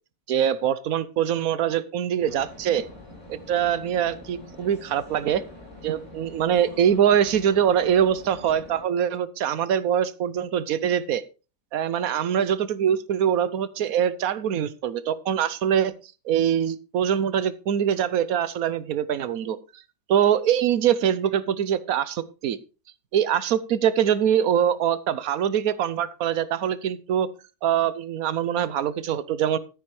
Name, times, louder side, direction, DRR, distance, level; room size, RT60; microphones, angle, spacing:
voice 1, 0.3-2.8 3.3-5.4 5.8-11.2 11.7-15.9 16.2-19.6 20.1-22.6 23.1-27.3 27.6-29.6, right 9 dB, 75° right, 16 dB, 1.2 m, -23 dB
sound 1, 2.2-8.8, left 1 dB, 55° left, 5.0 m, -44 dB
13.0 x 9.8 x 3.2 m, 0.33 s
omnidirectional pair, 1.6 m